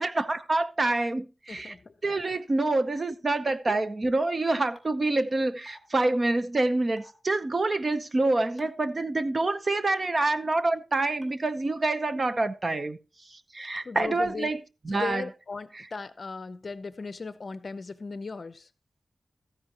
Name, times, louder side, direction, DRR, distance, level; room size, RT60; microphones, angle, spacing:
voice 1, 0.0-1.7 2.0-13.0 13.3-15.3 15.7-15.9, right 2 dB, 35° right, 0.8 m, -27 dB
voice 2, 1.5-1.8 13.9-14.5 14.9-18.6, left 4 dB, 45° left, 0.7 m, -37 dB
sound 1, 4.8-4.9 5.7-5.8 7.0-7.1 8.6-8.8 9.9-10.0 11.2-11.3, left 1 dB, 15° left, 2.8 m, -52 dB
14.0 x 10.0 x 2.9 m
wide cardioid pair, 145°, 0 cm